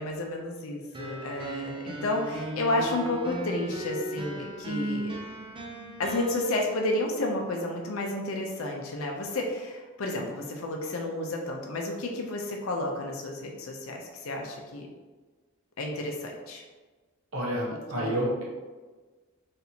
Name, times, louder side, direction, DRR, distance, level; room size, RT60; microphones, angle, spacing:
voice 1, 0.0-5.2 6.0-14.9 15.8-16.6 18.0-18.1, left 1 dB, 75° left, 1 dB, 0.5 m, -31 dB
sound 1, 0.9-6.4, right 1 dB, 25° right, 0.4 m, -36 dB
voice 2, 17.3-18.4, equal, 75° right, -4 dB, 1.0 m, -29 dB
4.1 x 3.3 x 2.8 m, 1.3 s
head